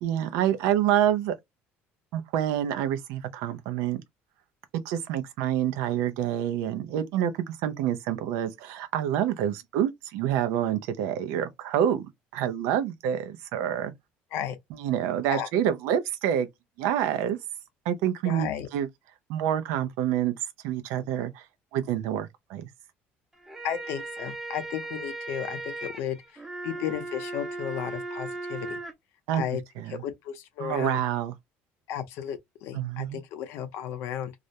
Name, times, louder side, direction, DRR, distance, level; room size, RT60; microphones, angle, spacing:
voice 1, 0.0-1.3 2.1-4.0 4.7-13.9 14.8-16.5 16.8-17.4 17.9-18.9 19.3-20.3 20.6-21.4 21.7-22.7 29.3-29.4 29.8-30.0 30.6-31.3 32.7-33.2, right 10 dB, 90° right, 0.5 m, -27 dB
voice 2, 18.2-18.7 23.6-28.8 29.3-29.6 29.9-31.0 31.9-34.3, left 10 dB, 65° left, 0.6 m, -34 dB
sound 1, 23.3-28.9, right 2 dB, 5° right, 0.4 m, -37 dB
2.4 x 2.0 x 2.7 m
cardioid pair, 165°, 5 cm